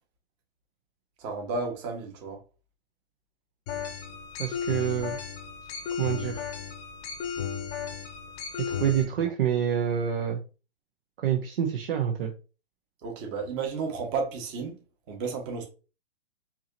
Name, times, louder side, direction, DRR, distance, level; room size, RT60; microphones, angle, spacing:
voice 1, 1.2-2.4 9.2-9.3 13.0-14.8 15.1-15.7, right 4 dB, 30° right, 1.4 m, -32 dB
sound 1, 3.7-9.0, left 7 dB, 30° left, 0.8 m, -34 dB
voice 2, 4.4-5.2 6.0-6.4 8.8-10.4 11.2-12.3, right 9 dB, 55° right, 0.8 m, -27 dB
4.7 x 2.9 x 2.7 m
hypercardioid pair, 125°, 34 cm